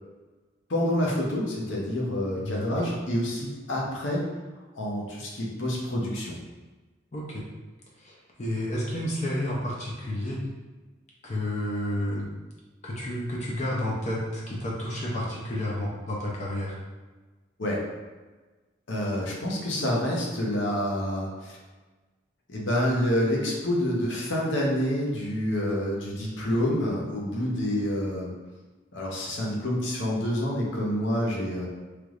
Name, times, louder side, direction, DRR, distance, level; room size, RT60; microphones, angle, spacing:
voice 1, 0.7-4.2 4.7-6.3 17.6-17.8 18.9-21.6 22.5-28.3 28.9-31.7, equal, 70° left, -3 dB, 0.8 m, -27 dB
voice 2, 2.4-2.8 7.1-7.5 8.0-10.4 11.2-12.3 12.8-16.8, left 1 dB, 35° left, -4 dB, 0.5 m, -31 dB
3.3 x 3.0 x 2.4 m, 1.3 s
head